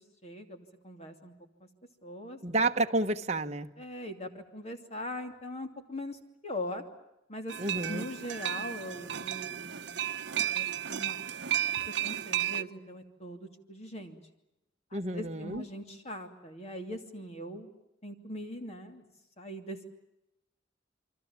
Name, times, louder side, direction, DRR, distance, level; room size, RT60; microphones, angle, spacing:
voice 1, 0.2-1.3 2.0-2.4 3.8-6.2 6.4-6.8 7.3-10.0 10.5-11.2 12.0-14.2 14.9-17.7 18.0-19.0 19.4-19.9, left 1 dB, 35° left, 6 dB, 2.7 m, -41 dB
voice 2, 2.4-3.7 7.6-8.0 14.9-15.6, right 2 dB, 35° right, 6 dB, 1.2 m, -30 dB
sound 1, 7.5-12.6, right 10 dB, 65° right, 0.9 m, -33 dB
28.0 x 24.0 x 7.3 m, 0.91 s
head